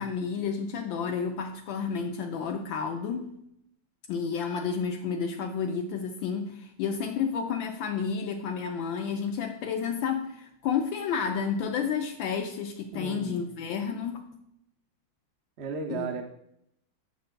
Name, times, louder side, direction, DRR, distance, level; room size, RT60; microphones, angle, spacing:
voice 1, 0.0-3.3 4.1-14.2 15.9-16.1, left 6 dB, 75° left, 4 dB, 1.3 m, -31 dB
voice 2, 12.9-13.5 15.6-16.2, right 5 dB, 55° right, 4 dB, 0.7 m, -35 dB
9.3 x 6.7 x 2.2 m, 0.77 s
omnidirectional pair, 2.1 m